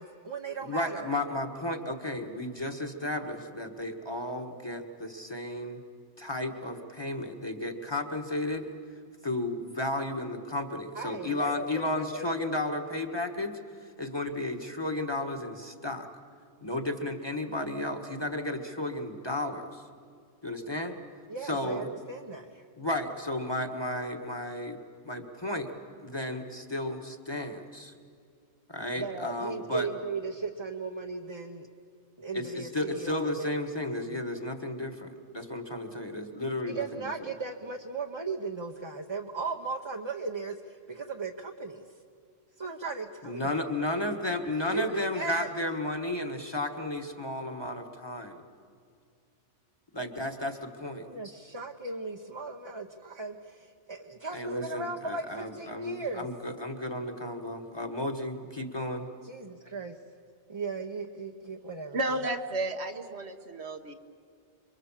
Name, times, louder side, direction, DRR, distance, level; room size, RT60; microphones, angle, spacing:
voice 1, 0.0-1.1 10.9-12.5 21.3-22.6 29.0-31.7 32.2-34.2 34.7-35.1 36.7-41.9 42.6-43.7 44.7-45.5 51.0-56.3 59.2-60.0 60.5-62.0, right 3 dB, 25° right, 2 dB, 1.0 m, -37 dB
voice 2, 0.6-5.8 6.2-8.7 9.2-13.6 14.0-16.1 16.6-19.8 20.4-21.0 21.4-21.9 22.8-24.8 25.0-25.7 26.0-27.9 28.7-29.9 32.3-37.1 43.2-48.4 49.9-51.1 54.3-59.1, left 1 dB, 20° left, 5 dB, 1.6 m, -33 dB
voice 3, 61.9-63.9, right 2 dB, 70° right, 6 dB, 1.6 m, -32 dB
27.5 x 23.5 x 7.4 m, 2.3 s
omnidirectional pair, 1.2 m